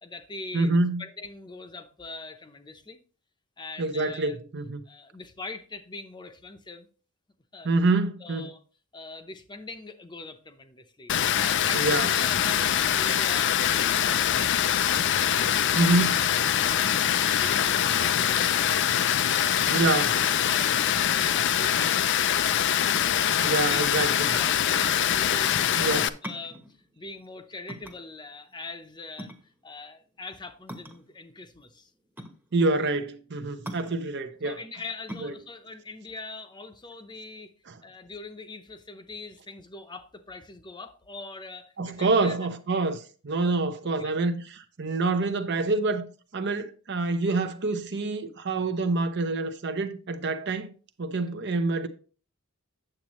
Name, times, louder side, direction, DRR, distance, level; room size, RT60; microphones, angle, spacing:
voice 1, 0.0-3.0 3.6-4.4 4.9-6.9 7.5-7.7 8.2-8.6 8.9-11.1 11.4-14.8 15.2-15.9 16.3-18.7 19.2-22.9 23.3-31.9 34.4-37.5 37.8-42.4 43.4-43.6 43.8-44.1, left 3 dB, 20° left, 0.7 m, -42 dB
voice 2, 0.5-1.0 3.8-4.8 7.6-8.5 11.7-12.1 15.7-16.1 19.7-20.2 23.4-24.1 25.8-26.0 32.5-34.6 35.2-35.3 41.8-46.0 46.3-50.7 51.0-51.9, right 3 dB, 50° right, 0.7 m, -26 dB
Water, 11.1-26.1, left 10 dB, 55° left, 0.4 m, -24 dB
sound 1, 22.9-37.2, equal, 10° right, 1.0 m, -44 dB
8.8 x 7.3 x 3.0 m
head